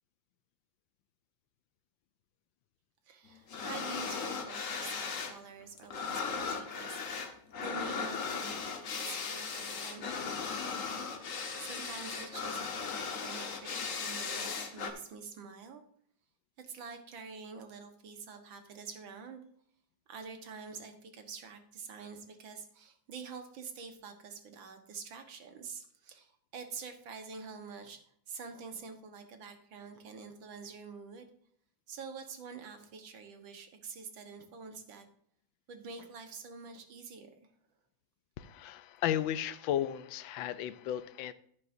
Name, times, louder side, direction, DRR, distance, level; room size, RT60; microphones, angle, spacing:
voice 1, 3.1-7.0 7.6-10.8 11.6-15.8 16.6-19.4 20.1-31.3 31.9-35.1 35.7-37.3, right 5 dB, 80° right, 6 dB, 2.0 m, -47 dB
sound 1, 3.5-5.4 5.6-14.9, left 5 dB, 45° left, 1.4 m, -37 dB
voice 2, 38.4-41.3, left 11 dB, 85° left, 14 dB, 1.4 m, -34 dB
11.0 x 9.5 x 2.6 m, 0.64 s
omnidirectional pair, 2.1 m